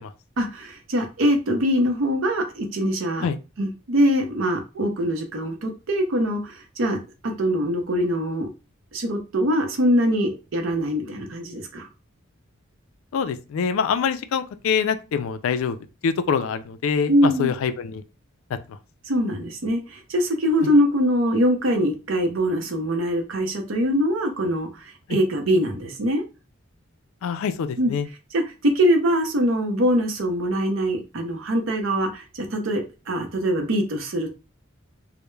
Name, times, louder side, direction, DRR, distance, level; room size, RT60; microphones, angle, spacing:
voice 1, 0.4-3.3 3.6-8.5 8.9-11.9 17.1-17.5 19.1-26.2 27.8-27.9 28.3-34.3, equal, 65° right, 0.6 m, -23 dB
voice 2, 13.1-15.8 16.0-18.0 18.7-18.8 25.1-25.2 27.2-28.1, left 6 dB, 80° left, 0.3 m, -25 dB
2.2 x 2.0 x 3.0 m
head